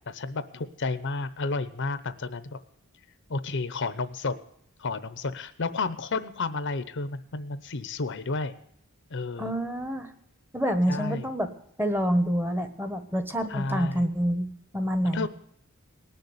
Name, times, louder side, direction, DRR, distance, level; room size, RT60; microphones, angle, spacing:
voice 1, 0.1-2.6 3.3-4.3 4.8-8.5 9.1-9.5 10.9-11.3 13.5-14.1 15.0-15.3, left 3 dB, 55° left, 13 dB, 0.8 m, -31 dB
voice 2, 9.4-10.1 10.5-11.5 11.8-15.3, equal, 10° right, 9 dB, 1.2 m, -27 dB
19.0 x 6.8 x 9.7 m, 0.70 s
head